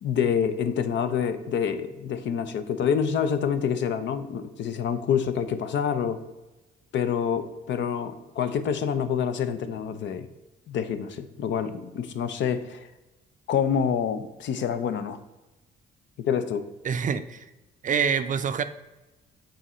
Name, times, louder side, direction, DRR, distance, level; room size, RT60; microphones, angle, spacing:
voice 1, 0.0-6.2 6.9-10.3 10.7-12.9 13.5-15.2 16.2-16.7, left 7 dB, 70° left, 10 dB, 0.6 m, -27 dB
voice 2, 16.8-17.5 17.8-18.6, right 7 dB, 40° right, 11 dB, 0.4 m, -26 dB
6.2 x 3.9 x 4.3 m, 1.1 s
cardioid pair, 90°, 20 cm